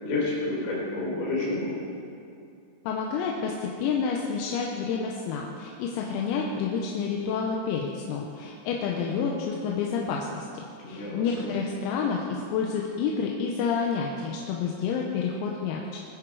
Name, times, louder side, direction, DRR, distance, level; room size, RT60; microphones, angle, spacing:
voice 1, 0.0-1.7 10.8-11.5, left 2 dB, 70° left, -5 dB, 6.7 m, -30 dB
voice 2, 2.9-10.5 10.9-16.0, left 6 dB, 90° left, -1 dB, 3.8 m, -29 dB
23.0 x 10.0 x 4.8 m, 2.5 s
omnidirectional pair, 6.0 m